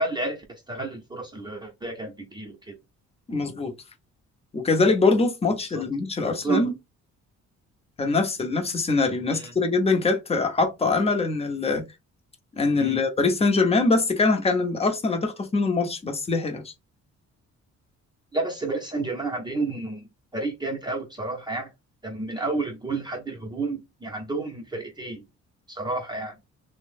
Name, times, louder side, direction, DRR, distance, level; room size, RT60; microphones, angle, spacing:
voice 1, 0.0-2.8 5.7-5.8 6.2-6.7 9.3-9.5 12.8-13.0 18.3-20.1 20.3-21.7 22.0-25.2 25.7-26.3, right 3 dB, 15° right, 0.7 m, -30 dB
voice 2, 3.3-3.7 4.5-6.7 8.0-11.8 12.6-16.7, left 3 dB, 20° left, 0.7 m, -23 dB
2.8 x 2.1 x 3.2 m
cardioid pair, 125°, 29 cm